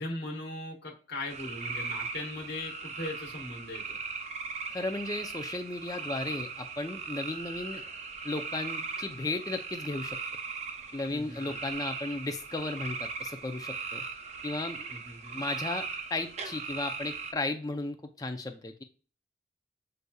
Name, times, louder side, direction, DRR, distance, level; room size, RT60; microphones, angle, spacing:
voice 1, 0.0-4.0 11.1-11.6 14.9-15.4, left 2 dB, 65° left, -2 dB, 1.2 m, -39 dB
sound 1, 1.3-17.3, right 5 dB, 35° right, 0.5 m, -39 dB
voice 2, 4.7-7.8 8.2-10.2 10.9-14.0 14.4-14.9 15.3-15.8 16.1-18.8, left 2 dB, 20° left, 6 dB, 0.5 m, -35 dB
7.7 x 2.7 x 2.3 m, 0.37 s
head